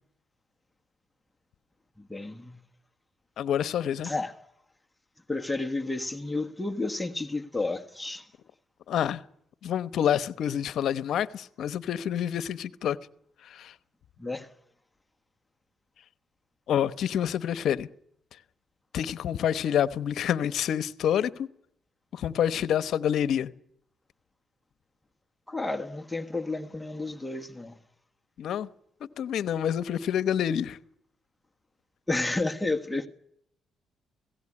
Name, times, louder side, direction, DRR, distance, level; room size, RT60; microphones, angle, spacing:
voice 1, 2.0-2.6 4.0-4.3 5.3-8.3 14.2-14.5 25.5-27.8 32.1-33.1, left 2 dB, 10° left, 1.4 m, -31 dB
voice 2, 3.4-4.1 8.9-9.2 9.6-13.0 13.4-13.7 16.7-17.9 18.9-21.5 22.1-23.5 28.4-28.7 29.2-30.8, left 9 dB, 70° left, 1.0 m, -27 dB
17.5 x 16.0 x 9.8 m
cardioid pair, 90°, 0 cm